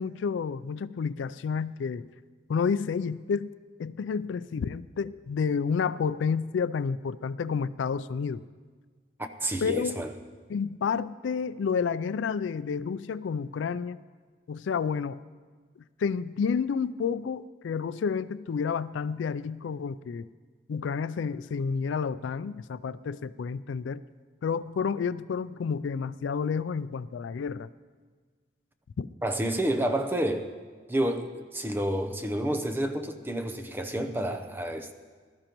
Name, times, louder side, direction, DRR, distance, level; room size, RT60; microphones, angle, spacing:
voice 1, 0.0-2.1 2.5-3.5 3.8-8.4 9.6-10.0 10.5-14.0 14.5-15.2 16.0-20.3 20.7-24.0 24.4-27.7 29.0-29.1, left 6 dB, 80° left, 16 dB, 0.3 m, -30 dB
voice 2, 9.4-10.1 29.2-30.5 30.9-34.9, right 1 dB, 10° right, 7 dB, 0.6 m, -29 dB
20.5 x 13.0 x 3.0 m, 1.5 s
head